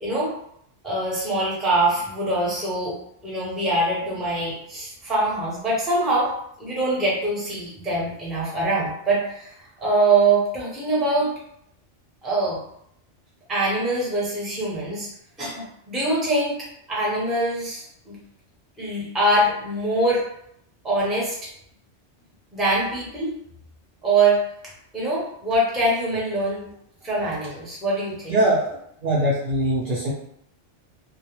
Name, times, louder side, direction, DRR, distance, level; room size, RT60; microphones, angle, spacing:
voice 1, 0.0-0.3 0.8-2.9 3.2-6.3 6.6-11.3 12.2-12.6 13.5-15.1 15.4-16.6 16.9-18.2 18.8-20.2 20.8-21.5 22.5-23.3 24.0-24.4 24.9-26.7 27.0-28.4, right 2 dB, ahead, -6 dB, 0.5 m, -23 dB
voice 2, 28.3-28.6 29.0-30.1, right 1 dB, 60° right, -6 dB, 0.6 m, -21 dB
2.3 x 2.0 x 2.9 m, 0.72 s
omnidirectional pair, 1.2 m